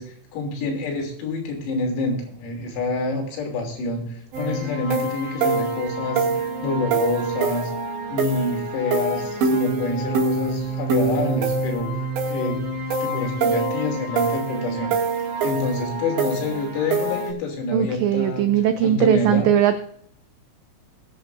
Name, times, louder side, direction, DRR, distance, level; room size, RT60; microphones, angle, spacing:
voice 1, 0.0-7.7 8.1-12.7 13.0-18.5 18.8-19.5, left 3 dB, 85° left, 1 dB, 5.8 m, -27 dB
sound 1, 4.3-17.3, right 3 dB, 60° right, 4.3 m, -25 dB
voice 2, 17.7-19.8, right 10 dB, 85° right, 8 dB, 2.5 m, -19 dB
20.0 x 11.0 x 2.6 m, 0.65 s
omnidirectional pair, 6.0 m